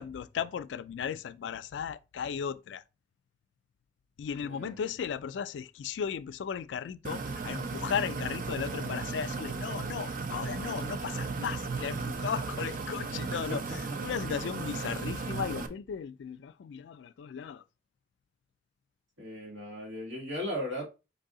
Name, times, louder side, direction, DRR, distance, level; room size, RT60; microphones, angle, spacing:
voice 1, 0.0-2.8 4.2-17.6, left 7 dB, 75° left, 0.3 m, -36 dB
voice 2, 4.4-4.8 13.5-13.6 19.2-20.8, equal, 85° right, 1.9 m, -37 dB
water fill, 7.0-15.7, right 4 dB, 50° right, 0.5 m, -35 dB
4.7 x 2.7 x 3.7 m
head